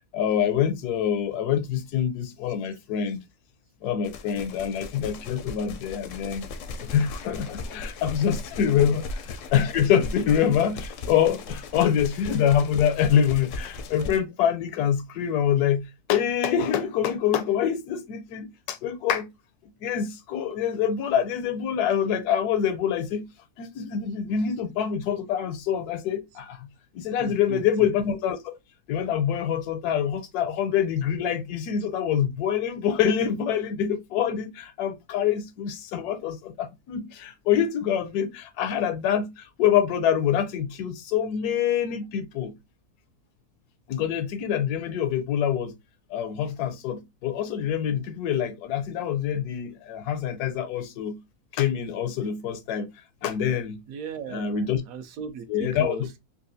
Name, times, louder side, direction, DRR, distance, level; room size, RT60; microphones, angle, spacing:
voice 1, 0.1-3.2 3.8-6.4 6.8-19.3 19.6-23.3 23.6-28.5 28.9-42.5 43.9-45.7 46.1-51.2 51.5-52.9 53.2-53.8 54.3-54.8 55.5-56.0, left 9 dB, 85° left, 1.1 m, -25 dB
sound 1, 4.0-14.2, left 3 dB, 70° left, 0.8 m, -37 dB
voice 2, 27.2-27.6 53.9-56.2, right 7 dB, 70° right, 1.0 m, -37 dB
4.1 x 2.3 x 2.6 m
omnidirectional pair, 1.6 m